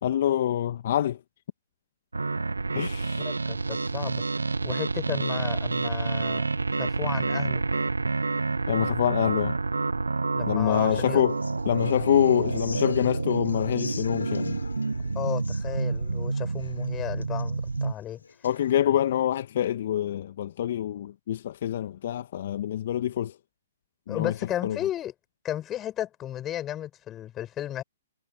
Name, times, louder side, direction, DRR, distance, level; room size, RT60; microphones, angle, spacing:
voice 1, 0.0-1.2 2.7-3.3 8.7-9.6 10.5-11.4 11.7-14.6 18.4-23.3 24.1-24.3 24.6-24.8, left 11 dB, 55° left, 1.6 m, -26 dB
sound 1, 2.1-17.9, right 3 dB, 85° right, 0.6 m, -28 dB
voice 2, 3.2-4.2 4.6-6.5 6.8-7.6 10.3-11.2 15.1-18.2 24.1-25.1 25.4-27.8, left 12 dB, 20° left, 6.9 m, -34 dB
Human voice / Acoustic guitar, 10.7-18.7, left 5 dB, 75° left, 5.6 m, -45 dB
figure-of-eight pair, 125°, 0 cm